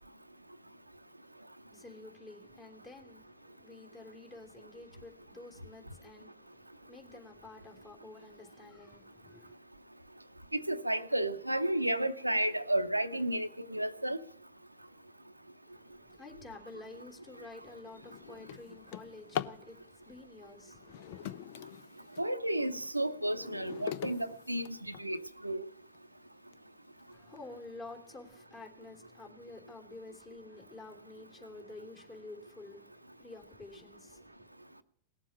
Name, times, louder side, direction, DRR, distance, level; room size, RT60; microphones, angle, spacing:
voice 1, 1.7-9.6 15.7-21.3 27.1-34.5, left 2 dB, 25° left, 3.2 m, -50 dB
voice 2, 10.5-14.2 22.2-24.7 25.0-25.6, right 1 dB, 85° right, 0.7 m, -32 dB
Drawer open or close, 17.0-17.2 17.7-19.7 20.7-22.3 22.9-25.3 25.9-26.0 26.5-26.6 27.0-27.4, left 10 dB, 50° left, 0.6 m, -42 dB
18.5 x 7.4 x 9.8 m
figure-of-eight pair, 90°, 0 cm